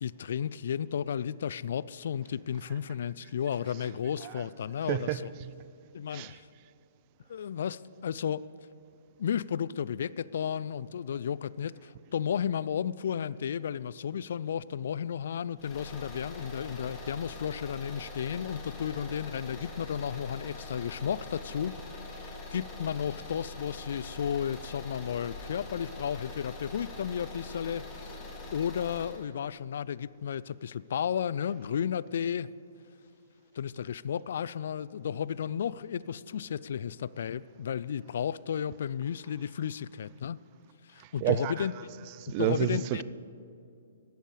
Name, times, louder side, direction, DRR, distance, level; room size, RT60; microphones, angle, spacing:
voice 1, 0.0-5.3 5.9-6.5 7.3-8.4 9.2-21.8 22.1-28.2 28.5-32.5 33.6-40.4 40.9-41.7 42.4-43.0, left 8 dB, 60° left, 0.3 m, -33 dB
voice 2, 4.2-4.5 4.9-5.5 6.1-6.3 41.2-41.7 42.0-43.0, right 13 dB, 35° right, 0.5 m, -30 dB
sound 1, 15.6-29.2, left 2 dB, 20° left, 2.4 m, -43 dB
17.5 x 14.0 x 3.3 m
figure-of-eight pair, 125°, 0 cm